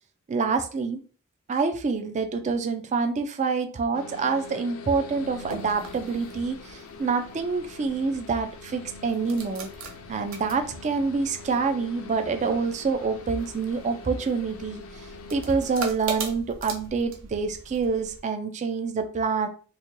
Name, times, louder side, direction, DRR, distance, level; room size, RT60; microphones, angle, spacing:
voice 1, 0.3-1.0 1.5-9.7 10.1-14.8 15.3-19.5, right 4 dB, 35° right, 6 dB, 0.3 m, -27 dB
sound 1, 3.9-15.8, left 3 dB, 65° left, 0.4 m, -44 dB
sound 2, 5.1-18.2, right 4 dB, 65° right, 0.7 m, -42 dB
3.8 x 2.2 x 3.0 m, 0.39 s
head